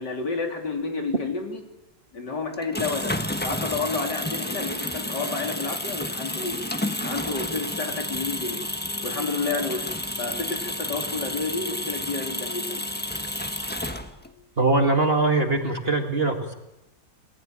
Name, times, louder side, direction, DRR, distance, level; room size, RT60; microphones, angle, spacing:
voice 1, 0.0-1.6 2.1-3.2 3.4-6.6 7.0-8.6 9.0-9.9 10.2-12.9, left 4 dB, 60° left, 3 dB, 4.1 m, -30 dB
sound 1, 2.5-14.4, left 1 dB, 5° left, 1.1 m, -31 dB
voice 2, 14.6-16.5, right 3 dB, 30° right, 4 dB, 2.3 m, -22 dB
28.0 x 20.0 x 9.0 m, 0.93 s
omnidirectional pair, 2.1 m